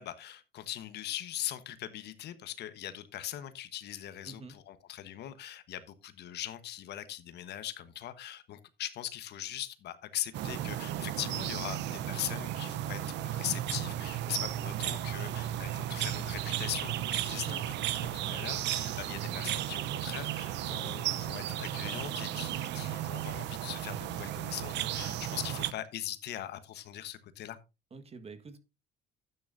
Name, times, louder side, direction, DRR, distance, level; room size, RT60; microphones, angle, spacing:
voice 1, 0.0-17.6 17.9-27.6, left 12 dB, 70° left, 1.2 m, -41 dB
voice 2, 4.2-4.6 17.4-17.6 27.9-28.6, right 3 dB, 35° right, 1.5 m, -45 dB
sound 1, 10.3-25.7, right 12 dB, 75° right, 0.7 m, -34 dB
12.5 x 9.1 x 2.6 m
cardioid pair, 105°, 18 cm